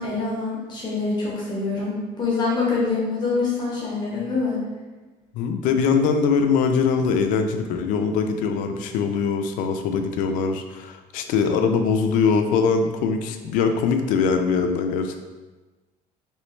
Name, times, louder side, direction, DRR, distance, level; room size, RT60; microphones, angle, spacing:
voice 1, 0.0-4.6, left 4 dB, 35° left, -5 dB, 0.9 m, -25 dB
voice 2, 5.3-15.2, left 5 dB, 90° left, 6 dB, 0.4 m, -22 dB
3.1 x 3.0 x 3.1 m, 1.2 s
cardioid pair, 150°, 13 cm